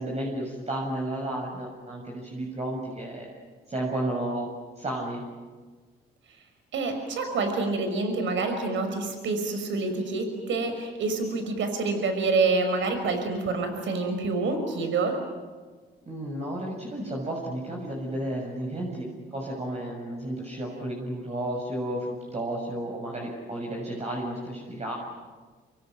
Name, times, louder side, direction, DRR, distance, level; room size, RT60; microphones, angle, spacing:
voice 1, 0.0-3.3 3.7-4.5 4.8-5.2 16.1-24.9, right 1 dB, 35° right, -2 dB, 7.2 m, -32 dB
voice 2, 6.7-15.1, right 3 dB, 75° right, 7 dB, 5.8 m, -27 dB
27.5 x 23.0 x 9.5 m, 1.4 s
cardioid pair, 90°, 20 cm